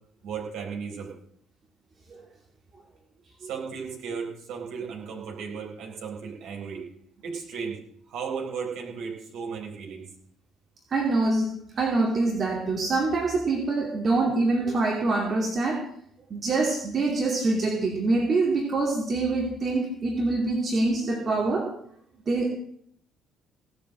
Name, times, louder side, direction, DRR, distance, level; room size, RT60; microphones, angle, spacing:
voice 1, 0.2-1.1 3.4-6.9 7.2-7.8 8.1-10.0, right 6 dB, 60° right, -1 dB, 4.2 m, -35 dB
voice 2, 10.9-15.8 16.3-21.7 22.3-22.5, right 3 dB, 40° right, 0 dB, 2.6 m, -25 dB
17.0 x 7.9 x 7.6 m, 0.68 s
figure-of-eight pair, 50°, 0 cm